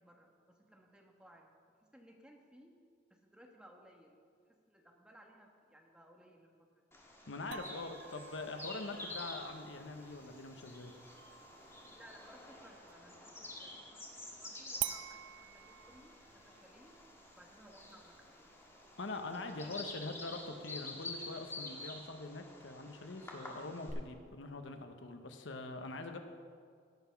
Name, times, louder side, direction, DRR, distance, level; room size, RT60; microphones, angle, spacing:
voice 1, 0.0-1.5 1.8-2.7 3.1-4.2 4.5-6.5 6.7-6.8 12.0-16.9 17.3-18.6 19.3-19.8, equal, 5° right, 0 dB, 1.2 m, -60 dB
Bird vocalization bird call bird song, 6.9-23.9, left 2 dB, 15° left, 1.6 m, -49 dB
voice 2, 7.3-10.9 19.0-26.2, left 2 dB, 80° left, 6 dB, 0.9 m, -44 dB
sound 1, 7.5-13.1 14.8-19.8, right 15 dB, 75° right, 0.3 m, -49 dB
16.5 x 5.9 x 5.8 m, 2.2 s
head